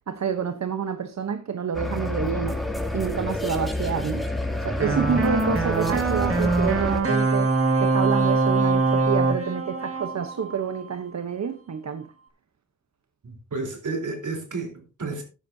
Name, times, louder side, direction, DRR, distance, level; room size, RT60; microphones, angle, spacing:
voice 1, 0.1-2.6 2.9-4.3 4.6-7.5 7.8-12.1, right 7 dB, 65° right, 0.9 m, -28 dB
sound 1, 1.7-7.0, left 1 dB, ahead, 2.5 m, -28 dB
sound 2, 4.8-10.9, right 3 dB, 45° right, 2.1 m, -23 dB
voice 2, 13.2-15.2, right 3 dB, 80° right, 3.8 m, -31 dB
13.0 x 10.0 x 2.7 m
cardioid pair, 75°, 30 cm